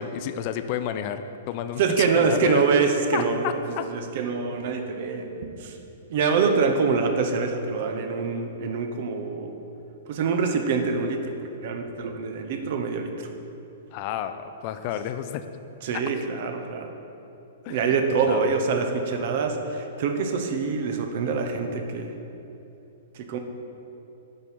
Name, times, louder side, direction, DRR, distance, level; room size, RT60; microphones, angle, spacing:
voice 1, 0.0-2.6 3.1-3.9 13.9-15.4 17.6-17.8 18.2-18.5, left 10 dB, 45° left, 10 dB, 0.4 m, -31 dB
voice 2, 1.8-5.8 6.1-9.6 10.1-11.3 11.6-13.3 15.8-16.9 17.7-22.1 23.1-23.4, right 5 dB, 50° right, 5 dB, 0.8 m, -25 dB
8.6 x 5.6 x 4.3 m, 2.9 s
figure-of-eight pair, 110°, 0 cm